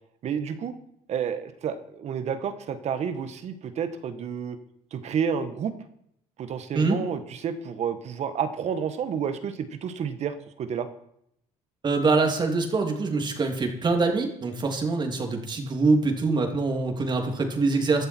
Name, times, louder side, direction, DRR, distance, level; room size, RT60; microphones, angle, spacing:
voice 1, 0.2-0.7 1.1-4.6 4.9-5.7 6.4-10.9, right 7 dB, 55° right, 10 dB, 1.6 m, -30 dB
voice 2, 11.8-18.1, right 3 dB, 35° right, 3 dB, 3.0 m, -24 dB
16.0 x 12.0 x 4.6 m, 0.72 s
cardioid pair, 115°, 14 cm